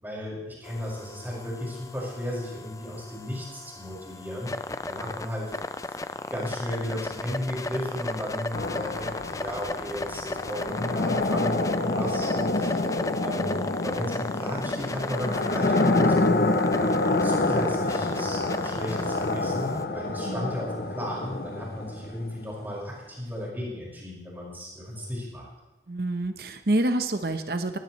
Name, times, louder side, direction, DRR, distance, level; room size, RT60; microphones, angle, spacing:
voice 1, 0.0-5.6 5.9-12.9 13.2-16.5 17.2-25.5, equal, 10° right, -5 dB, 5.5 m, -34 dB
sound 1, 0.6-19.8, left 2 dB, 20° left, 0.4 m, -36 dB
sound 2, 8.5-22.4, left 2 dB, 55° left, 0.9 m, -27 dB
voice 2, 25.9-27.8, right 1 dB, 60° right, 8 dB, 0.9 m, -27 dB
19.5 x 16.0 x 3.2 m, 1.1 s
head